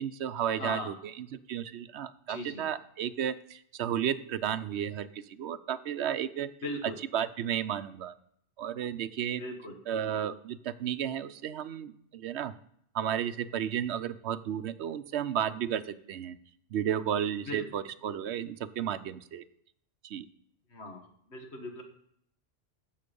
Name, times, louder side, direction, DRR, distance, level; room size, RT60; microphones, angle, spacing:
voice 1, 0.0-6.5 6.8-8.1 8.6-9.4 9.9-12.5 12.9-16.4 16.7-19.4 20.0-20.3, right 9 dB, 75° right, 13 dB, 0.9 m, -33 dB
voice 2, 0.5-0.9 2.3-2.6 6.6-7.0 9.4-9.7 17.5-17.6 20.7-21.8, left 1 dB, 70° left, 3 dB, 2.0 m, -39 dB
13.0 x 7.7 x 5.3 m, 0.69 s
omnidirectional pair, 1.2 m